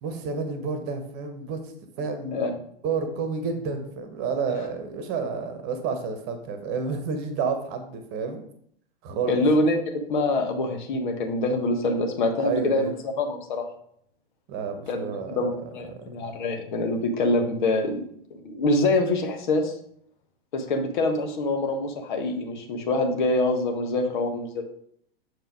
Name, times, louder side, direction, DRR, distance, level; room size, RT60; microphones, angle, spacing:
voice 1, 0.0-1.6 2.0-2.4 2.8-8.4 9.0-9.4 12.4-12.9 14.5-15.4 15.9-16.0, right 5 dB, 35° right, 7 dB, 1.2 m, -30 dB
voice 2, 9.3-12.9 13.2-13.7 14.9-18.0 18.4-19.7 20.5-24.6, left 2 dB, 55° left, 4 dB, 1.3 m, -25 dB
6.5 x 4.7 x 4.9 m, 0.67 s
figure-of-eight pair, 95°, 29 cm